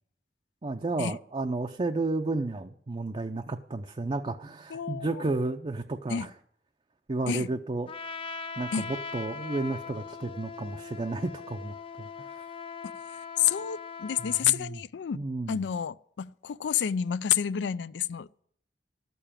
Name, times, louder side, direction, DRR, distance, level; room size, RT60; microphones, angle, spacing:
voice 1, 0.6-6.3 7.1-7.9 8.6-12.4 14.2-14.8 15.1-15.6, right 2 dB, 30° right, 0.5 m, -32 dB
voice 2, 4.7-5.3 6.1-6.3 7.3-7.5 8.7-8.9 13.4-15.2 15.5-18.4, left 9 dB, 80° left, 0.4 m, -29 dB
Trumpet, 7.9-14.5, left 5 dB, 30° left, 0.5 m, -40 dB
12.5 x 6.9 x 8.8 m
head